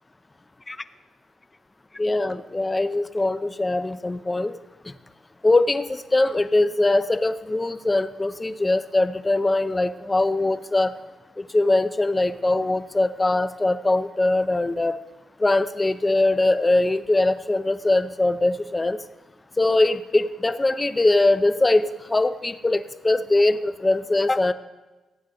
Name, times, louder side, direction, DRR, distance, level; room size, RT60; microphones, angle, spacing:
voice 1, 2.0-4.5 5.4-10.9 11.5-15.0 15.4-19.0 19.6-24.5, left 2 dB, 15° left, 12 dB, 0.5 m, -21 dB
16.5 x 9.0 x 3.8 m, 1.1 s
cardioid pair, 120°, 0 cm